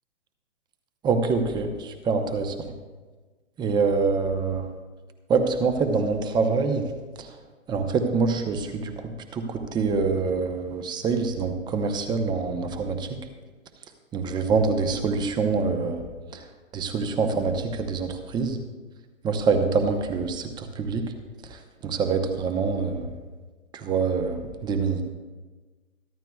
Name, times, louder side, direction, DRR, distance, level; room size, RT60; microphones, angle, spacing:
voice 1, 1.0-2.7 3.6-4.7 5.3-6.8 7.2-7.4 7.7-13.2 14.1-16.1 16.3-16.5 16.7-18.6 19.2-21.1 21.4-23.1 23.7-25.0, right 4 dB, 10° right, 7 dB, 0.8 m, -25 dB
23.0 x 12.0 x 2.3 m, 1.3 s
hypercardioid pair, 135°, 40 cm